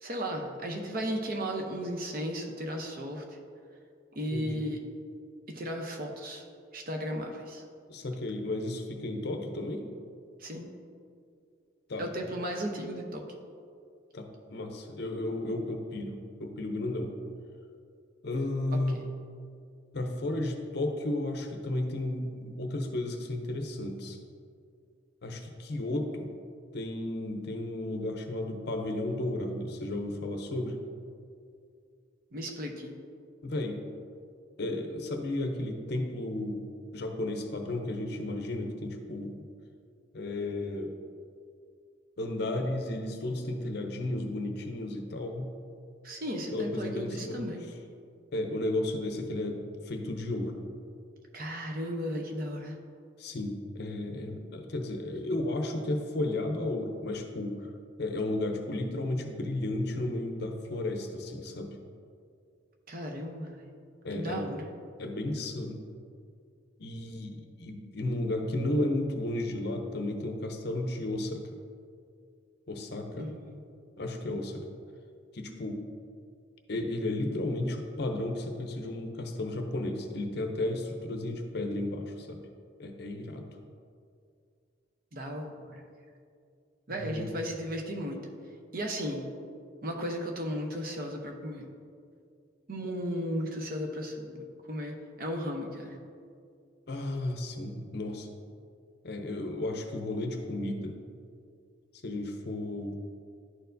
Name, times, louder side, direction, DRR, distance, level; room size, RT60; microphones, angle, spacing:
voice 1, 0.0-3.4 4.1-4.8 5.5-6.4 6.7-7.6 10.4-10.7 12.0-13.2 18.9-19.0 32.3-32.9 46.0-47.6 51.3-52.7 62.9-63.7 64.2-64.7 73.2-73.6 85.1-85.8 86.9-88.2 88.7-89.3 89.8-91.7 92.7-96.0, equal, 45° right, 2 dB, 0.8 m, -35 dB
voice 2, 4.3-4.7 7.9-9.9 11.9-12.1 14.1-17.1 18.2-19.0 19.9-24.2 25.2-26.3 26.7-30.8 33.4-33.8 34.6-36.6 36.9-39.4 40.1-40.9 42.2-45.5 46.5-47.4 48.3-50.6 53.2-57.6 58.0-61.8 64.0-64.5 65.0-65.8 66.8-71.4 72.7-73.3 74.0-74.7 75.3-75.8 76.7-82.4 82.8-83.5 86.9-87.3 96.9-98.3 99.0-101.0 102.0-103.0, left 1 dB, 55° left, 4 dB, 0.6 m, -33 dB
11.0 x 4.5 x 2.6 m, 2.3 s
head